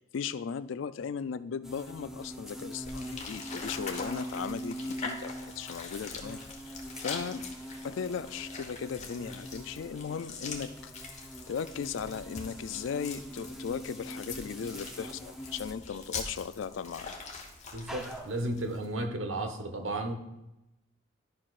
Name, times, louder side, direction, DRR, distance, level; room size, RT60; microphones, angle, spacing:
voice 1, 0.0-6.4 6.7-7.4 7.8-10.9 11.5-17.1, left 6 dB, 80° left, 14 dB, 0.4 m, -37 dB
sound 1, 1.6-19.1, equal, ahead, 0.6 m, -44 dB
sound 2, 2.9-18.9, left 4 dB, 35° left, 1.0 m, -43 dB
voice 2, 17.7-20.1, right 1 dB, 90° right, 5 dB, 1.0 m, -33 dB
11.5 x 5.8 x 2.4 m, 0.92 s
head